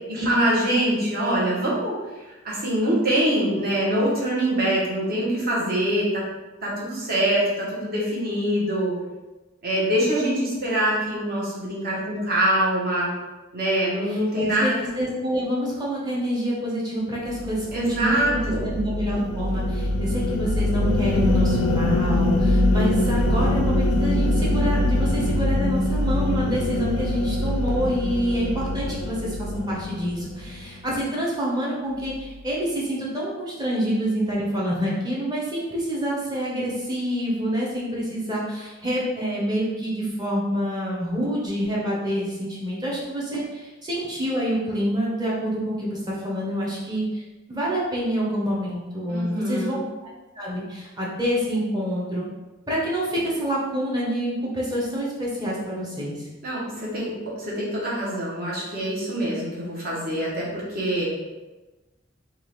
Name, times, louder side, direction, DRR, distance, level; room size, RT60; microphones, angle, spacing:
voice 1, 0.1-2.0 2.4-6.2 6.6-8.9 9.6-13.1 13.5-14.7 17.7-18.7 49.1-49.8 56.4-61.1, right 1 dB, 50° right, -5 dB, 1.1 m, -24 dB
voice 2, 14.1-47.2 47.5-50.1 50.4-52.2 52.7-56.3, equal, 20° right, -5 dB, 0.9 m, -27 dB
sound 1, 17.2-30.8, left 1 dB, 85° left, 0.4 m, -23 dB
3.7 x 2.4 x 3.1 m, 1.1 s
head